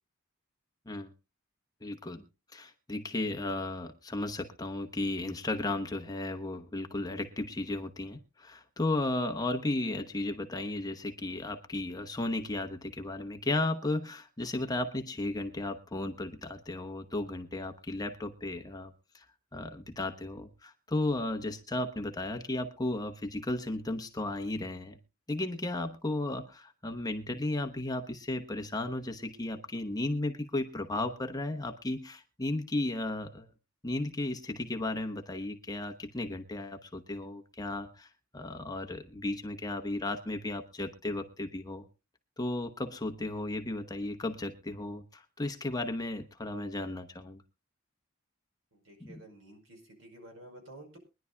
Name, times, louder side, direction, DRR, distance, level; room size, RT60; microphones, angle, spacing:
voice 1, 1.8-2.2 2.5-19.3 19.5-25.0 25.3-33.5 33.8-41.9 42.4-47.4 49.0-49.2, left 2 dB, 20° left, 5 dB, 1.0 m, -34 dB
voice 2, 48.7-51.0, right 1 dB, 70° right, 4 dB, 5.2 m, -51 dB
23.0 x 11.0 x 2.3 m, 0.28 s
head